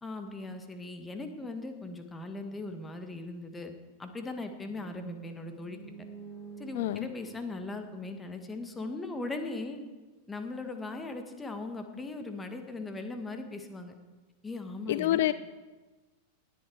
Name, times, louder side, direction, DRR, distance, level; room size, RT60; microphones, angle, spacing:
voice 1, 0.0-3.7 4.0-5.8 6.6-9.8 10.3-13.9 14.4-15.2, left 2 dB, 15° left, 6 dB, 1.7 m, -39 dB
sound 1, 4.6-8.7, right 7 dB, 5° right, 3.2 m, -48 dB
voice 2, 6.7-7.1 14.9-15.3, left 14 dB, 55° left, 15 dB, 0.3 m, -27 dB
18.5 x 10.0 x 4.7 m, 1.3 s
figure-of-eight pair, 90°, 0 cm